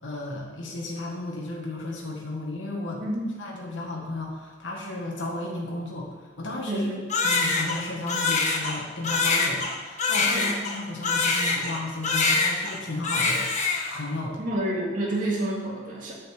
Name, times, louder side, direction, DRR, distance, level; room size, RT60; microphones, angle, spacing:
voice 1, 0.0-3.0 3.4-6.9 7.2-13.5 13.9-14.4, left 2 dB, 85° left, -1 dB, 1.7 m, -34 dB
voice 2, 3.0-3.3 6.7-7.1 10.3-10.5 14.4-16.1, right 1 dB, 45° right, -4 dB, 2.2 m, -29 dB
Crying sobbing, 7.1-11.8 12.0-12.8 13.0-14.0, left 4 dB, 40° left, 1.3 m, -24 dB
9.7 x 5.6 x 7.5 m, 1.3 s
head